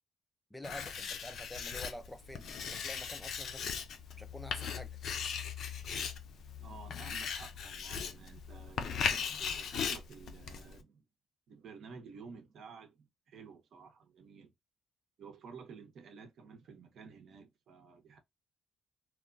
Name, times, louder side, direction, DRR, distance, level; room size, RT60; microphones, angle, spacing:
voice 1, 0.5-3.7 4.2-5.0, left 1 dB, 10° left, 0.4 m, -48 dB
Writing, 0.6-10.8, left 7 dB, 65° left, 0.5 m, -38 dB
voice 2, 6.6-11.0 11.5-14.5 15.2-18.2, right 5 dB, 65° right, 0.8 m, -52 dB
2.9 x 2.2 x 2.4 m
cardioid pair, 90°, 0 cm